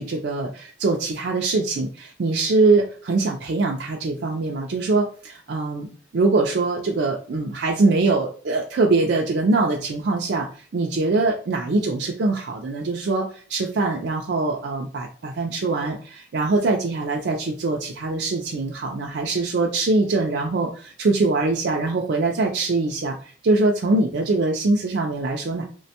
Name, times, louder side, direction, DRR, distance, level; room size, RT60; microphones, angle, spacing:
voice 1, 0.0-5.9 6.1-10.5 10.7-23.1 23.4-25.7, right 3 dB, 60° right, 0 dB, 0.4 m, -23 dB
3.2 x 2.1 x 2.8 m, 0.41 s
head